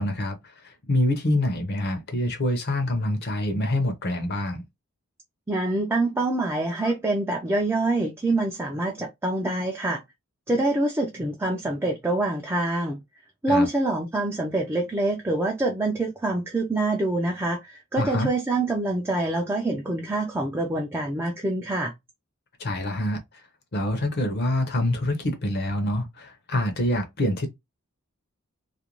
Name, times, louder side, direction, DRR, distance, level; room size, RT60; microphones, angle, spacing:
voice 1, 0.0-4.6 13.5-13.7 18.0-18.3 22.6-23.2 23.7-27.5, left 1 dB, 45° left, 0.6 m, -26 dB
voice 2, 5.5-10.0 10.5-13.0 13.4-21.9, right 2 dB, 10° right, 0.3 m, -25 dB
2.5 x 2.1 x 2.9 m
head